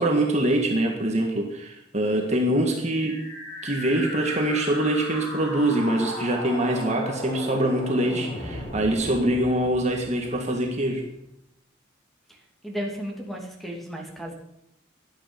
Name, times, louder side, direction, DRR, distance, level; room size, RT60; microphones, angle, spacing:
voice 1, 0.0-3.2 3.6-11.0, right 1 dB, 35° right, 1 dB, 1.9 m, -24 dB
sound 1, 2.8-10.7, equal, 25° left, 7.5 m, -36 dB
voice 2, 12.6-14.3, equal, ahead, 0 dB, 2.8 m, -34 dB
17.5 x 12.0 x 5.3 m, 0.80 s
head